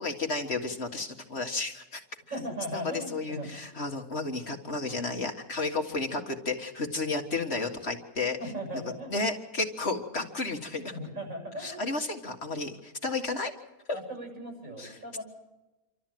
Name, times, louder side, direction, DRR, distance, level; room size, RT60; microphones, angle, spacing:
voice 1, 0.0-2.0 2.7-8.4 9.1-10.9 11.6-13.5 14.8-15.0, left 3 dB, 50° left, 3 dB, 2.0 m, -32 dB
voice 2, 2.3-3.6 8.4-9.1 10.9-11.9 13.9-15.2, equal, 70° right, 1 dB, 7.6 m, -38 dB
27.5 x 13.0 x 9.2 m, 1.1 s
omnidirectional pair, 1.5 m